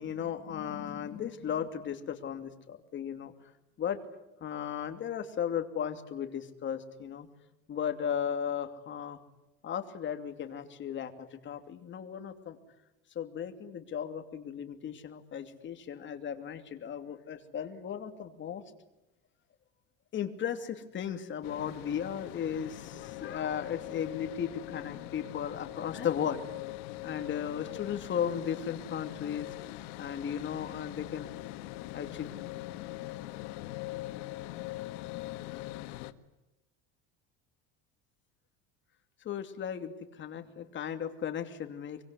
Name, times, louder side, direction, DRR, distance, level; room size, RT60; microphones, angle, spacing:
voice 1, 0.0-3.3 3.8-4.0 4.4-7.3 7.7-9.2 9.6-12.6 13.1-18.6 20.1-26.4 27.0-31.3 31.9-32.3 39.2-42.0, left 8 dB, 35° left, 7 dB, 2.8 m, -36 dB
sound 1, 21.4-36.1, left 17 dB, 85° left, 1.6 m, -42 dB
25.0 x 24.5 x 9.8 m, 0.95 s
cardioid pair, 145°, 35 cm